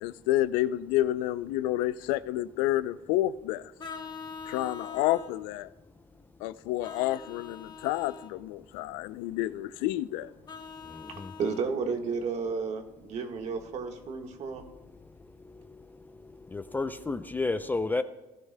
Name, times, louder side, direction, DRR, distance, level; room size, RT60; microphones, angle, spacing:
voice 1, 0.0-3.7 4.5-5.7 6.4-10.3, left 14 dB, 85° left, 0.4 m, -29 dB
Vehicle horn car horn honking, 3.8-5.3 6.8-8.3 10.5-11.7, left 5 dB, 30° left, 1.3 m, -43 dB
voice 2, 11.1-14.6, right 5 dB, 50° right, 1.5 m, -32 dB
voice 3, 16.5-18.0, left 3 dB, 15° left, 0.4 m, -30 dB
18.0 x 12.5 x 2.2 m
cardioid pair, 115°, 14 cm